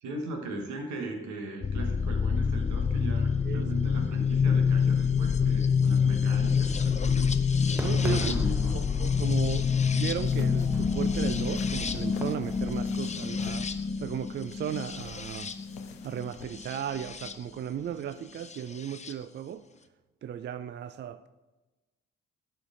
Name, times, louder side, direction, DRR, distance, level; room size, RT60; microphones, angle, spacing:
voice 1, 0.0-7.3 8.0-8.8, right 2 dB, 70° right, 3 dB, 1.3 m, -38 dB
sound 1, 1.6-17.3 18.5-19.1, left 6 dB, 25° left, 0.6 m, -27 dB
Fireworks, 7.8-12.8, right 1 dB, 5° right, 0.8 m, -40 dB
voice 2, 7.8-8.3 8.7-13.7 14.0-15.5 16.0-19.6 20.2-21.3, right 9 dB, 35° right, 12 dB, 0.4 m, -36 dB
sound 2, 10.2-16.4, left 8 dB, 85° left, 0.6 m, -48 dB
11.0 x 4.5 x 3.7 m, 1.1 s
hypercardioid pair, 40°, 30 cm